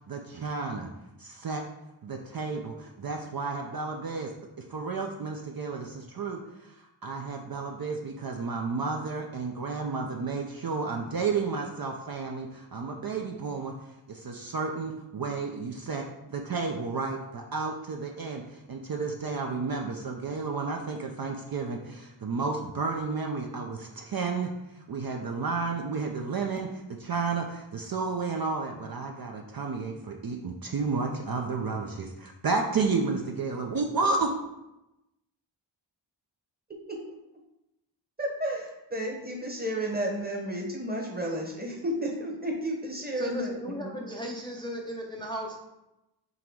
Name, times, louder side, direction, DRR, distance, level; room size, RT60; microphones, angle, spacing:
voice 1, 0.1-0.9 1.2-1.6 2.0-4.3 4.7-13.7 14.1-34.3, right 4 dB, 50° right, 2 dB, 0.5 m, -32 dB
voice 2, 38.2-44.0, right 1 dB, 20° right, 0 dB, 1.0 m, -32 dB
voice 3, 43.1-45.6, equal, 10° left, 0 dB, 0.5 m, -35 dB
3.8 x 2.9 x 4.6 m, 0.93 s
wide cardioid pair, 60°, 46 cm